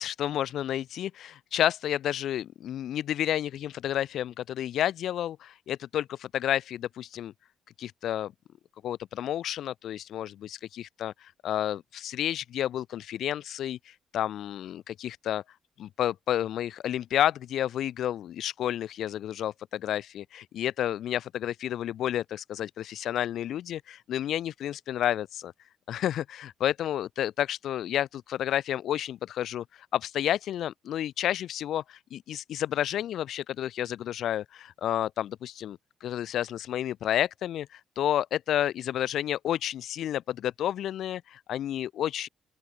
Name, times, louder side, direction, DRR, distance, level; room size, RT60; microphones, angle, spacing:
voice 1, 0.0-7.3 7.8-8.3 8.8-15.4 15.8-25.5 25.9-29.6 29.9-42.3, left 11 dB, 60° left, 2.2 m, -30 dB
open air
cardioid pair, 180°, 0 cm